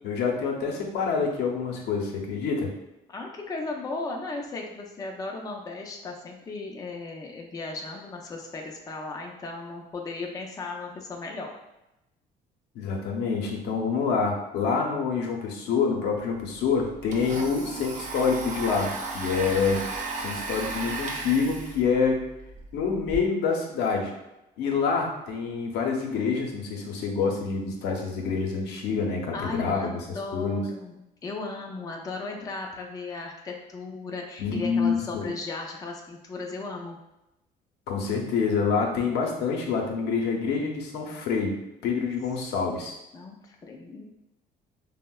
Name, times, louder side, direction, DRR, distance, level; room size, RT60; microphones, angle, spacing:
voice 1, 0.0-2.7 12.7-18.9 19.1-19.8 20.2-22.3 22.7-24.1 24.6-30.0 30.3-30.6 34.4-35.3 37.9-41.6 41.8-42.9, left 5 dB, 80° left, 1 dB, 0.6 m, -27 dB
voice 2, 3.1-11.5 29.3-37.0 43.1-44.0, left 3 dB, 20° left, 1 dB, 0.4 m, -36 dB
Domestic sounds home sounds, 16.2-16.3 16.6-23.2, right 3 dB, 45° right, 0.5 m, -35 dB
3.4 x 2.0 x 2.2 m, 0.92 s
cardioid pair, 110°, 17 cm